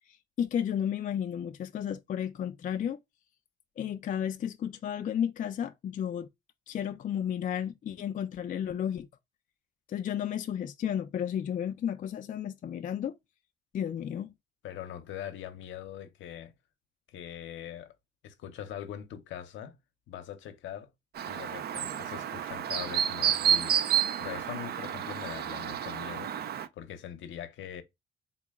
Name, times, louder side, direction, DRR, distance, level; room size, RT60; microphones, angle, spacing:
voice 1, 0.4-3.0 3.8-6.3 6.7-9.1 9.9-13.2 13.7-14.3, left 9 dB, 40° left, 0.4 m, -32 dB
voice 2, 14.6-16.5 17.1-17.9 18.2-19.8 20.1-20.9 21.3-23.9 24.2-26.4 26.7-27.8, left 10 dB, 75° left, 0.7 m, -42 dB
Chirp tweet, 21.2-26.7, right 9 dB, 55° right, 0.4 m, -30 dB
3.8 x 2.1 x 3.5 m
cardioid pair, 90°, 20 cm